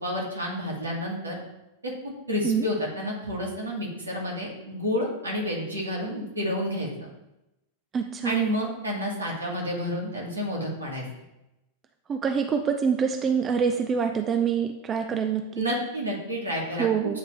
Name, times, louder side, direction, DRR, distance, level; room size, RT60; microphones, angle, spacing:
voice 1, 0.0-1.4 1.8-6.9 8.2-11.1 15.5-16.9, equal, 80° right, -3 dB, 1.9 m, -30 dB
voice 2, 7.9-8.4 12.1-15.6 16.8-17.2, right 6 dB, 25° right, 5 dB, 0.5 m, -25 dB
9.0 x 3.2 x 3.3 m, 0.91 s
figure-of-eight pair, 90°, 0 cm